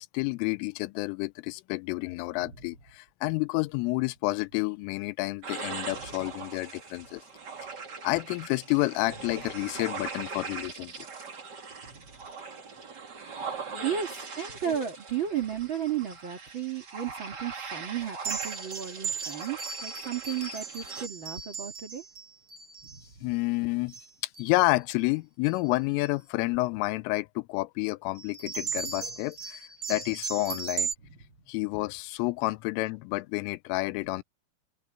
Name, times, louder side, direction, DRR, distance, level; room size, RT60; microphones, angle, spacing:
voice 1, 0.0-7.2 8.0-10.9 13.7-13.8 23.2-24.0 24.4-30.9 31.5-34.2, left 22 dB, 85° left, 3.2 m, -29 dB
sound 1, 5.4-21.1, right 5 dB, 70° right, 1.0 m, -41 dB
voice 2, 13.0-22.0 22.8-23.0, right 9 dB, 85° right, 1.1 m, -34 dB
sound 2, 18.2-23.0 23.9-24.1 24.3-24.8 25.5-25.7 28.2-30.9, right 6 dB, 50° right, 1.7 m, -36 dB
open air
omnidirectional pair, 5.7 m